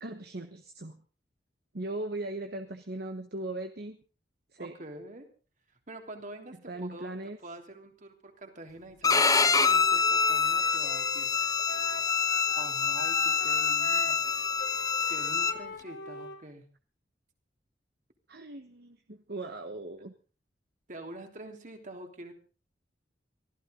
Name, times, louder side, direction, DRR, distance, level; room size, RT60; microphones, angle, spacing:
voice 1, 0.0-1.0 1.7-4.0 4.5-4.7 6.7-7.4 18.3-20.1, right 2 dB, 65° right, 7 dB, 1.3 m, -38 dB
voice 2, 4.6-5.3 5.9-7.2 7.4-11.3 12.6-14.2 15.1-16.7 20.9-22.3, right 1 dB, 45° right, 4 dB, 3.3 m, -45 dB
Bowed string instrument, 9.0-15.5, left 5 dB, 20° left, 1.1 m, -26 dB
Wind instrument woodwind instrument, 9.6-16.4, left 2 dB, 85° left, 4.6 m, -44 dB
23.5 x 15.0 x 3.9 m, 0.37 s
head